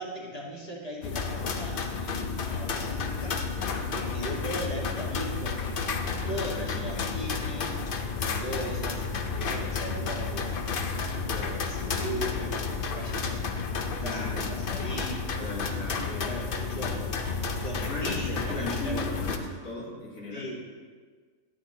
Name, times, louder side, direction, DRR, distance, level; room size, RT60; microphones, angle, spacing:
voice 1, 0.0-3.4 3.9-7.8 8.2-9.0 9.3-13.5 14.0-15.7 16.1-17.2 17.6-19.0 20.3-20.8, equal, 25° left, -5 dB, 1.8 m, -38 dB
sound 1, 1.0-19.4, left 5 dB, 55° left, 0.6 m, -31 dB
voice 2, 3.5-3.9 6.3-6.9 14.0-14.4 15.4-16.1 17.9-20.5, left 1 dB, 80° left, -4 dB, 2.0 m, -37 dB
11.0 x 8.2 x 3.0 m, 1.5 s
omnidirectional pair, 1.5 m